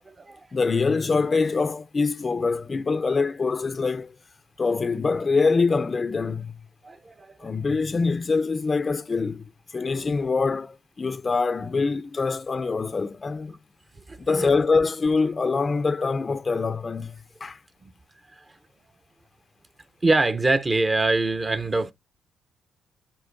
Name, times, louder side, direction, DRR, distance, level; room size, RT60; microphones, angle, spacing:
voice 1, 0.0-0.4 6.8-7.5 9.9-10.0 14.1-14.5 17.8-17.9 20.0-21.9, right 2 dB, 25° right, 0.8 m, -24 dB
voice 2, 0.5-4.1 4.6-6.6 7.4-13.6 14.2-17.6, left 4 dB, 30° left, 0.5 m, -24 dB
10.0 x 4.4 x 2.5 m
cardioid pair, 90°, 0 cm